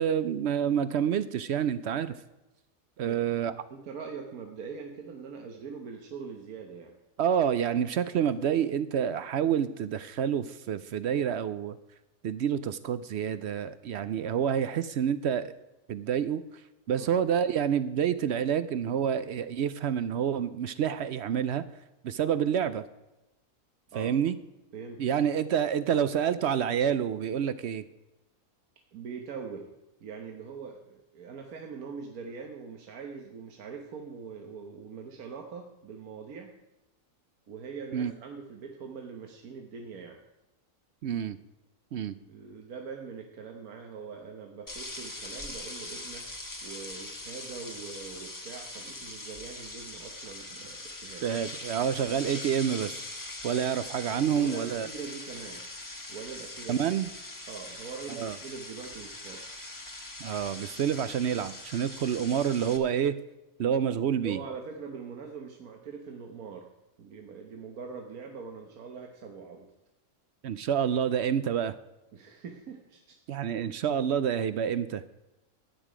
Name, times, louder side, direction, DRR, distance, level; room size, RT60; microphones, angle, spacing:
voice 1, 0.0-2.2 3.0-3.5 7.2-11.8 12.2-15.5 15.9-16.4 16.9-21.6 22.0-22.8 23.9-24.4 25.0-27.8 37.9-38.1 41.0-41.4 41.9-42.1 51.2-53.0 53.4-54.9 56.7-57.1 58.2-58.4 60.2-63.2 63.6-64.4 70.4-71.7 73.3-75.0, right 8 dB, 65° right, 14 dB, 0.7 m, -28 dB
voice 2, 3.0-6.9 16.9-17.2 23.9-24.1 24.7-25.0 28.9-29.7 30.0-36.6 37.5-40.2 42.2-51.2 54.0-55.7 56.1-56.8 57.5-59.5 64.2-66.7 67.0-69.7 72.1-73.2, right 5 dB, 80° right, 2 dB, 1.5 m, -43 dB
sound 1, 44.7-62.8, left 2 dB, 15° left, 0.9 m, -42 dB
12.5 x 9.3 x 4.9 m, 0.98 s
omnidirectional pair, 1.5 m